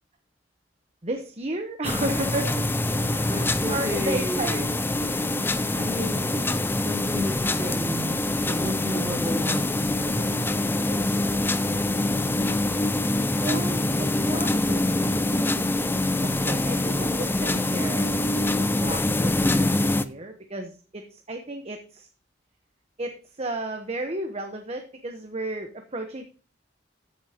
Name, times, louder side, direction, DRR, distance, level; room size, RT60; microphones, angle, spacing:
voice 1, 1.0-4.6 13.4-14.9 16.2-18.1 18.8-22.1 23.0-26.2, right 2 dB, 35° right, 5 dB, 1.1 m, -33 dB
sound 1, 1.8-20.1, left 1 dB, 10° left, 0.5 m, -25 dB
voice 2, 3.2-4.5 5.6-6.5 6.8-11.1, left 1 dB, 20° right, -2 dB, 4.9 m, -33 dB
15.0 x 8.2 x 2.9 m, 0.39 s
head